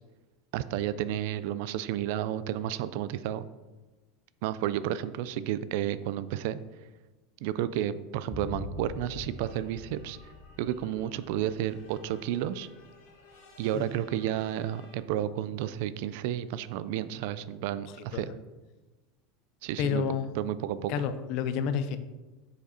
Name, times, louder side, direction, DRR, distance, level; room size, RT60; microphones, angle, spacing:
voice 1, 0.5-3.5 4.4-6.6 7.4-10.2 10.6-12.7 13.6-18.3 19.6-20.0 20.4-20.9, right 11 dB, 60° right, 15 dB, 0.3 m, -31 dB
sound 1, 8.3-12.5 12.8-12.9, left 3 dB, 15° left, 0.8 m, -44 dB
sound 2, 9.3-15.0, left 2 dB, 85° left, 2.1 m, -57 dB
voice 2, 17.9-18.3 19.8-20.3 20.9-22.0, left 7 dB, 45° left, 11 dB, 0.5 m, -30 dB
6.8 x 5.0 x 4.2 m, 1.2 s
supercardioid pair, 165°, 0 cm